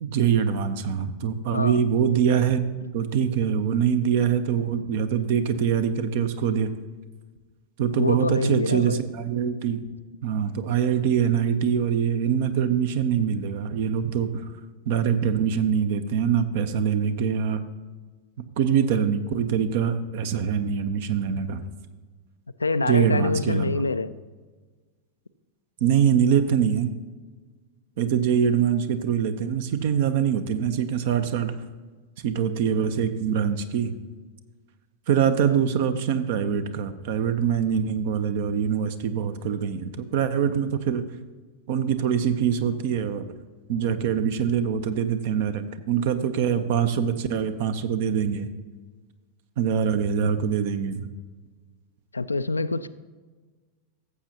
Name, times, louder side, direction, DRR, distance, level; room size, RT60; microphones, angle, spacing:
voice 1, 0.0-2.6 2.9-6.7 7.8-9.9 10.2-14.3 14.9-17.6 18.6-21.6 22.8-23.8 25.8-26.9 28.0-31.5 32.2-34.0 35.1-41.0 41.7-43.3 43.7-48.5 49.6-51.1, right 8 dB, 50° right, 10 dB, 0.8 m, -24 dB
voice 2, 7.9-9.0 22.6-24.1 35.5-35.6 52.1-52.9, left 3 dB, 80° left, 13 dB, 0.4 m, -26 dB
14.5 x 7.9 x 2.9 m, 1.4 s
figure-of-eight pair, 90°, 0 cm